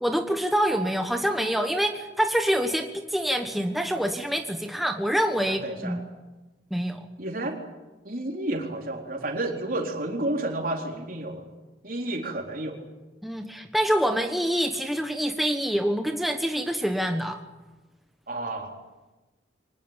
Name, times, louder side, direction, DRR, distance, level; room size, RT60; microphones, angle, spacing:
voice 1, 0.0-6.1 6.7-7.1 13.2-17.4, equal, ahead, 4 dB, 1.2 m, -26 dB
voice 2, 5.4-6.0 7.2-7.6 8.0-11.4 11.8-12.8 18.3-18.8, right 1 dB, 50° right, 2 dB, 4.1 m, -31 dB
25.0 x 20.0 x 9.0 m, 1.1 s
head